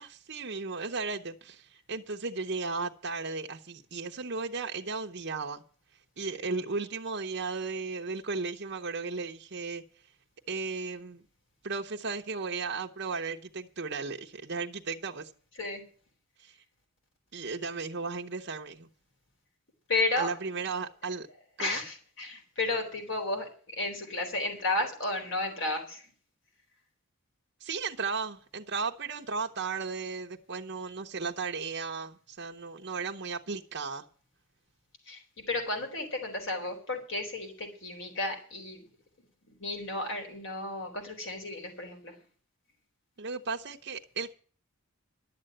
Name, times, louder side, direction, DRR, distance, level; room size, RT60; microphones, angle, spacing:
voice 1, 0.0-5.6 6.2-9.8 10.5-11.2 11.6-15.3 16.4-16.6 17.3-18.9 20.2-21.3 21.6-21.8 27.6-34.0 43.2-44.3, right 4 dB, 50° right, 0.8 m, -35 dB
voice 2, 19.9-20.3 21.6-26.1 35.1-38.9 39.5-42.1, left 2 dB, 55° left, 4.1 m, -33 dB
11.5 x 7.7 x 9.0 m
head